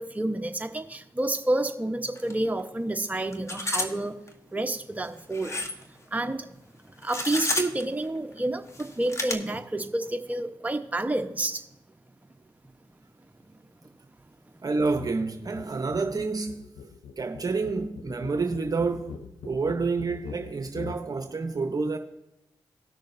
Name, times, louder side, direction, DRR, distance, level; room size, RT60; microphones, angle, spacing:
voice 1, 0.0-4.2 4.5-6.5 6.8-11.7 13.8-13.9, right 1 dB, 15° right, 1.0 m, -29 dB
sound 1, 2.2-2.3 2.6-2.7 3.3-3.9 4.3-4.4 5.3-5.8 7.0-7.8 8.7-9.3, left 2 dB, 35° left, 1.2 m, -30 dB
voice 2, 14.6-16.7 17.2-22.0, right 4 dB, 45° right, 0.8 m, -29 dB
sound 2, 14.9-15.2 15.4-21.0, left 6 dB, 80° left, 0.6 m, -42 dB
18.5 x 6.4 x 2.6 m
supercardioid pair, 45°, 9 cm